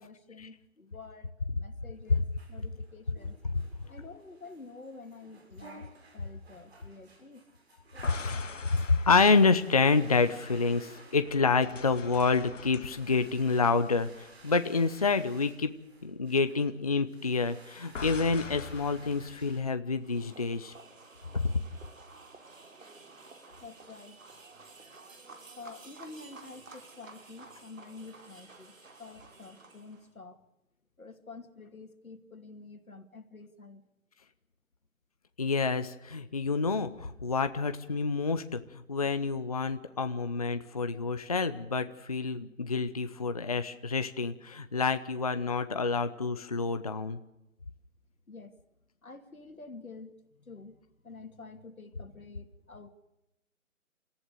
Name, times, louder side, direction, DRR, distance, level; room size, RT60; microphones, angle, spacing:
voice 1, 0.0-3.3 3.9-7.4 23.6-24.2 25.6-28.7 29.0-30.4 31.0-33.8 48.3-48.6 49.0-50.8 51.0-52.9, left 3 dB, 90° left, 8 dB, 2.7 m, -49 dB
sound 1, 1.9-19.6, right 3 dB, 50° right, 6.8 m, -56 dB
sound 2, 7.9-10.8 11.2-14.7 14.9-15.2 17.9-19.6, left 5 dB, 65° left, 1.7 m, -44 dB
voice 2, 8.1-8.5 8.9-15.7 16.0-20.7 21.3-21.5 35.4-38.6 38.9-47.2, left 4 dB, 30° left, 10 dB, 0.7 m, -28 dB
sound 3, 20.0-30.1, right 3 dB, 70° right, 4.4 m, -52 dB
29.5 x 14.5 x 6.7 m, 0.93 s
figure-of-eight pair, 160°, 41 cm